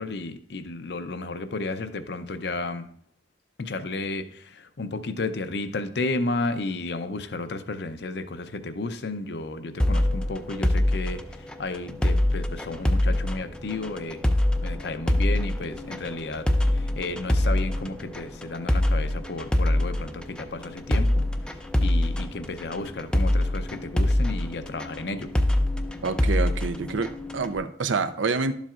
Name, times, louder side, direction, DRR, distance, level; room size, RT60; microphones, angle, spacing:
voice 1, 0.0-2.9 3.6-14.3 14.6-16.5 16.7-25.3, left 2 dB, 60° left, 10 dB, 0.6 m, -33 dB
sound 1, 9.8-27.5, left 1 dB, 5° left, 0.4 m, -25 dB
voice 2, 26.0-28.5, right 4 dB, 85° right, 11 dB, 0.6 m, -27 dB
12.0 x 7.3 x 2.4 m, 0.64 s
head